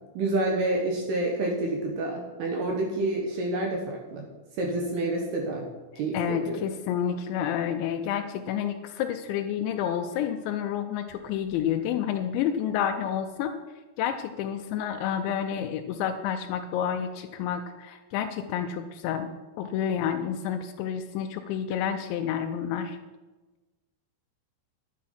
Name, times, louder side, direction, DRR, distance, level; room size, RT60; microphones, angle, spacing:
voice 1, 0.1-4.2 4.6-5.6 6.0-6.6, right 2 dB, 65° right, 0 dB, 2.8 m, -28 dB
voice 2, 6.1-13.5 14.0-19.3 19.6-23.0, left 9 dB, 85° left, 5 dB, 2.5 m, -29 dB
10.5 x 10.0 x 5.6 m, 1.2 s
omnidirectional pair, 5.9 m